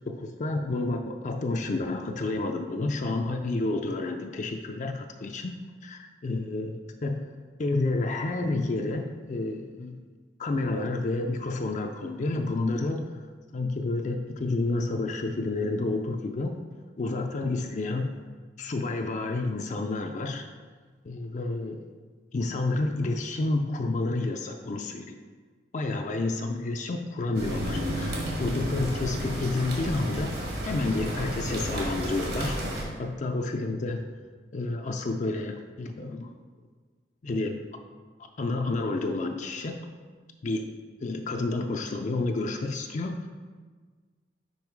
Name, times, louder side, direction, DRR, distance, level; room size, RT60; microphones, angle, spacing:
voice 1, 0.1-7.3 7.6-10.0 10.4-13.2 13.5-16.6 17.0-18.2 18.6-20.5 21.0-21.9 22.3-25.2 25.7-32.6 33.0-34.0 34.5-36.3 37.2-37.6 38.4-39.9 40.4-40.7 41.0-43.3, left 2 dB, 45° left, 4 dB, 0.4 m, -30 dB
sound 1, 27.3-32.8, right 1 dB, 65° right, 1.4 m, -32 dB
5.4 x 5.1 x 4.6 m, 1.5 s
head